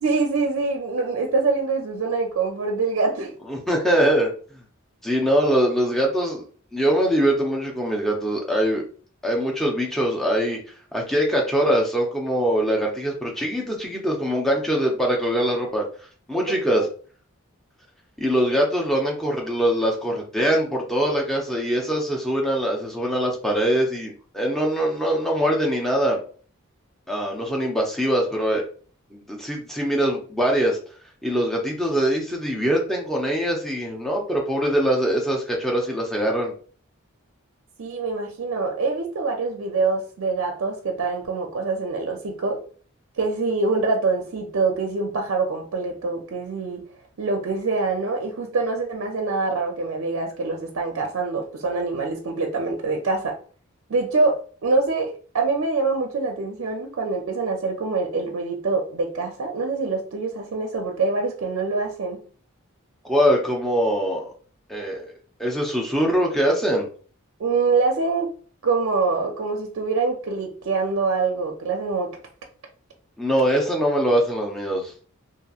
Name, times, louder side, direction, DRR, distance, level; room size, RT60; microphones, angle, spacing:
voice 1, 0.0-3.3 16.5-16.9 37.8-42.6 43.2-46.8 47.2-53.4 53.9-62.2 67.4-68.3 68.6-72.2, right 3 dB, 70° right, 0.4 m, -25 dB
voice 2, 3.5-4.3 5.0-6.4 6.7-8.8 9.2-10.6 10.9-15.8 16.3-16.9 18.2-26.2 27.1-28.6 29.1-30.8 31.2-36.5 63.0-64.3 64.7-65.1 65.4-66.9 73.2-74.9, equal, ahead, 0.5 m, -22 dB
2.8 x 2.5 x 2.3 m
head